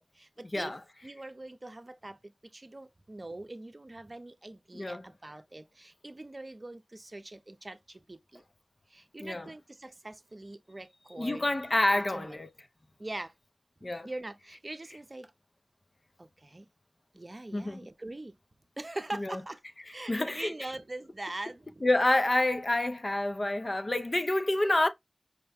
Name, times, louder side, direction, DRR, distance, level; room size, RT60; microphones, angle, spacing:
voice 1, 0.1-0.7 1.0-8.4 8.9-11.5 12.1-12.4 13.0-13.3 13.9-15.3 16.2-16.7 17.1-18.3 18.8-19.6 19.9-21.8, right 2 dB, 45° right, 0.6 m, -43 dB
voice 2, 4.7-5.0 9.2-9.5 11.2-12.5 13.8-14.1 17.5-17.8 19.1-19.4 20.1-20.5 21.8-24.9, left 1 dB, 50° left, 0.6 m, -28 dB
5.0 x 2.2 x 3.5 m
wide cardioid pair, 45°, 0 cm